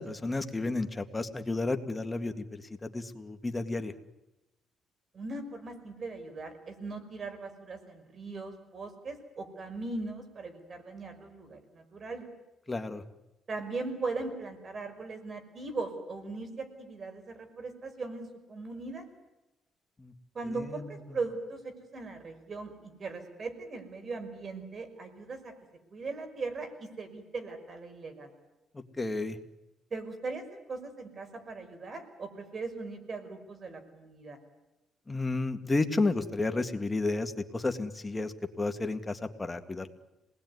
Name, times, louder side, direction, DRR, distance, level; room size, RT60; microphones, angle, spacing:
voice 1, 0.0-3.9 12.7-13.0 20.0-20.1 20.4-21.2 28.7-29.4 35.1-39.9, left 3 dB, 20° left, 7 dB, 2.1 m, -32 dB
voice 2, 5.1-12.3 13.5-19.1 20.3-25.5 25.9-28.3 29.9-34.4, right 3 dB, 45° right, 8 dB, 5.3 m, -39 dB
27.0 x 20.0 x 9.6 m, 0.97 s
cardioid pair, 90°, 0 cm